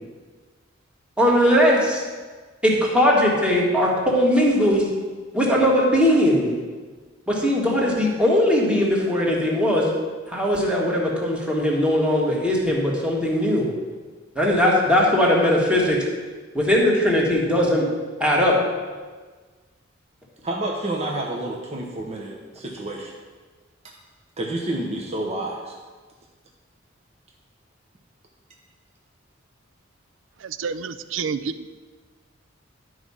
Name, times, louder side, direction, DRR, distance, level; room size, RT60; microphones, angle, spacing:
voice 1, 1.2-2.0 2.6-4.9 5.3-6.6 7.3-9.8 10.3-13.7 14.4-16.0 16.6-17.9 18.2-18.6, equal, 5° right, -3 dB, 1.6 m, -19 dB
voice 2, 20.4-23.1 23.8-23.9 24.4-25.7, right 1 dB, 35° right, -1 dB, 0.9 m, -29 dB
voice 3, 30.4-31.7, right 5 dB, 70° right, 12 dB, 0.4 m, -29 dB
11.5 x 4.8 x 5.5 m, 1.4 s
head